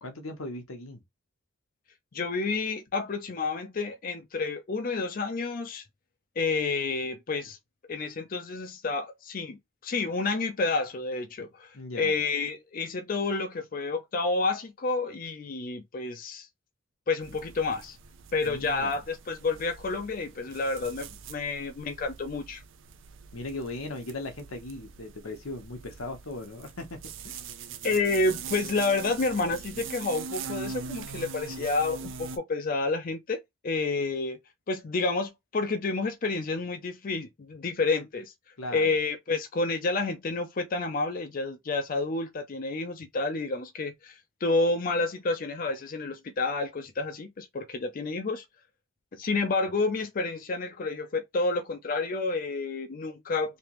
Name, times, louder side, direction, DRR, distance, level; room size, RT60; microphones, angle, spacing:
voice 1, 0.0-1.0 11.7-12.1 18.4-18.9 23.3-27.0 27.2-27.4 38.6-38.9, left 2 dB, 90° left, 1.1 m, -38 dB
voice 2, 2.1-5.8 6.4-7.6 7.9-16.5 17.1-18.0 18.3-22.6 27.8-34.4 34.7-38.3 38.7-48.4 49.1-53.6, left 3 dB, 40° left, 0.5 m, -29 dB
sound 1, 17.2-32.4, right 5 dB, 65° right, 0.5 m, -42 dB
3.3 x 2.9 x 3.0 m
head